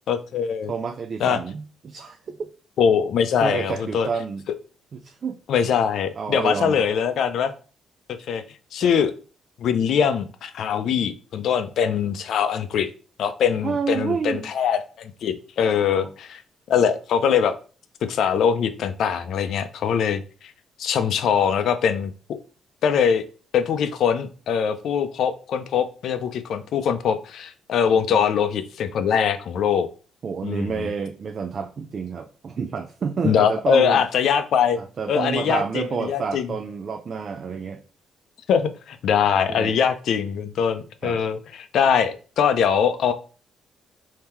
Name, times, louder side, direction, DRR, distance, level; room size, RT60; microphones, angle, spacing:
voice 1, 0.1-0.7 1.2-1.4 2.8-4.1 5.5-7.5 8.3-8.4 8.7-9.1 9.6-12.9 13.2-16.4 16.7-17.5 18.1-20.5 20.8-22.1 22.8-23.2 23.5-29.9 30.4-30.9 33.2-34.8 35.1-36.5 38.5-43.1, left 7 dB, 70° left, 10 dB, 0.5 m, -22 dB
voice 2, 0.7-2.5 3.4-4.4 4.9-5.4 6.2-6.9 8.8-8.9 13.6-14.5 15.7-16.1 28.1-28.2 30.2-34.0 34.8-37.8 39.5-39.8 41.0-41.2, right 5 dB, 50° right, 7 dB, 0.4 m, -29 dB
3.6 x 2.8 x 4.4 m, 0.37 s
cardioid pair, 90°, 0 cm